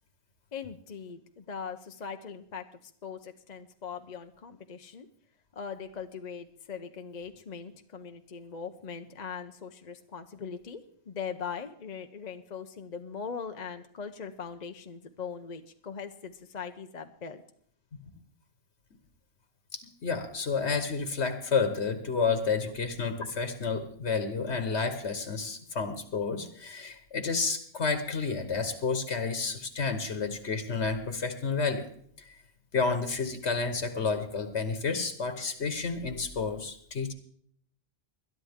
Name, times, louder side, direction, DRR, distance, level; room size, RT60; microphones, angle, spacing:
voice 1, 0.5-5.1 5.6-17.4, left 6 dB, 45° left, 7 dB, 0.8 m, -40 dB
voice 2, 19.7-31.9 32.7-37.1, left 4 dB, 85° left, 8 dB, 1.5 m, -30 dB
21.0 x 11.5 x 3.6 m, 0.63 s
omnidirectional pair, 1.1 m